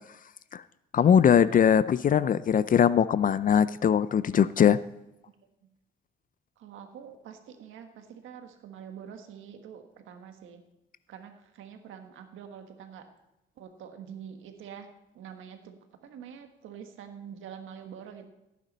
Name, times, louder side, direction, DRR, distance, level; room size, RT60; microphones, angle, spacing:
voice 1, 0.9-4.8, left 8 dB, 45° left, 16 dB, 0.5 m, -21 dB
voice 2, 6.6-10.6 11.1-13.1 13.6-14.9 15.1-18.3, right 8 dB, 85° right, 6 dB, 1.6 m, -46 dB
16.5 x 9.4 x 4.2 m, 0.91 s
cardioid pair, 90°, 20 cm